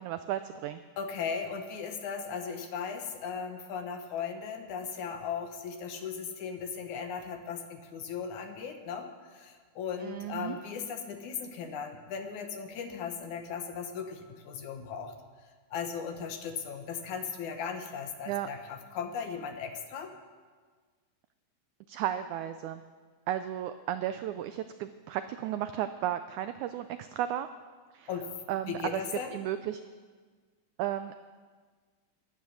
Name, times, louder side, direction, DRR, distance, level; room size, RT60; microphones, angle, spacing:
voice 1, 0.0-0.8 10.0-10.6 18.3-18.5 21.9-22.8 23.3-27.5 27.9-28.1 28.5-29.0 29.3-29.8 30.8-31.1, right 11 dB, 85° right, 10 dB, 1.7 m, -34 dB
voice 2, 1.0-15.1 15.7-20.1 28.1-28.3 28.7-29.3, left 6 dB, 65° left, 5 dB, 2.3 m, -37 dB
15.5 x 12.0 x 6.4 m, 1.5 s
omnidirectional pair, 4.0 m